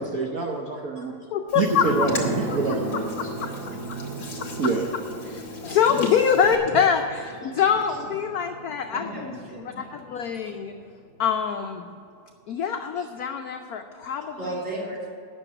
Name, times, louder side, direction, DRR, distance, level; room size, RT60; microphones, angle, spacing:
voice 1, 0.0-1.1 1.6-3.0 4.6-4.8, right 4 dB, 55° right, 1 dB, 1.2 m, -26 dB
voice 2, 1.3-2.1 2.5-2.6 2.9-4.5 5.3-9.3 9.7-10.7 11.2-11.9 12.5-14.4, left 7 dB, 75° left, 5 dB, 0.8 m, -25 dB
Hands, 1.5-6.6, left 4 dB, 55° left, 2.2 m, -41 dB
sound 1, 1.6-10.9 11.2-11.3, right 2 dB, 75° right, 1.9 m, -35 dB
voice 3, 8.9-10.0 14.4-15.1, right 1 dB, 30° right, -5 dB, 3.2 m, -34 dB
9.9 x 6.6 x 8.9 m, 2.4 s
omnidirectional pair, 2.2 m